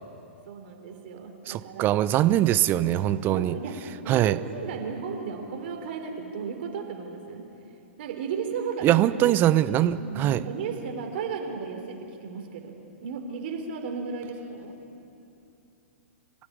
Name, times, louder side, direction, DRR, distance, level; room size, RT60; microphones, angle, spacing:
voice 1, 0.5-2.0 3.3-3.8 4.0-7.4 8.0-9.3 10.0-12.7 13.0-14.7, right 5 dB, 55° right, 3 dB, 3.8 m, -34 dB
voice 2, 1.5-3.6 4.1-4.4 8.8-10.4, right 13 dB, 30° right, 14 dB, 0.9 m, -22 dB
27.0 x 15.5 x 9.0 m, 2.7 s
figure-of-eight pair, 110°, 7 cm